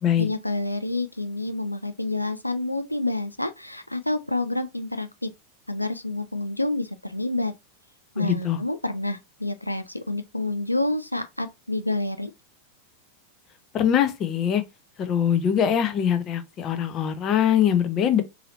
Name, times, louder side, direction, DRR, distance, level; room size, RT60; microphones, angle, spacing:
voice 1, 0.2-5.3 5.7-7.5 8.1-12.3, left 2 dB, 85° left, 0.3 m, -28 dB
voice 2, 8.2-8.6 13.7-14.6 15.0-18.2, left 9 dB, 30° left, 0.6 m, -22 dB
3.9 x 2.8 x 2.9 m
figure-of-eight pair, 90°, 0 cm